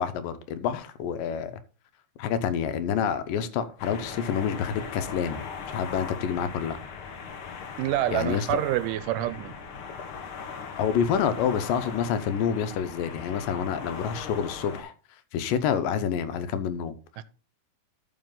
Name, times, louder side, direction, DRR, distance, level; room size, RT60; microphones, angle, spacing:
voice 1, 0.0-1.5 2.2-6.8 8.1-8.6 10.8-14.9 15.3-16.9, left 8 dB, 80° left, 2.5 m, -28 dB
sound 1, 3.8-14.8, left 5 dB, 60° left, 1.5 m, -39 dB
voice 2, 7.8-9.5 17.2-17.3, right 14 dB, 80° right, 2.1 m, -27 dB
13.0 x 4.9 x 3.8 m
omnidirectional pair, 3.9 m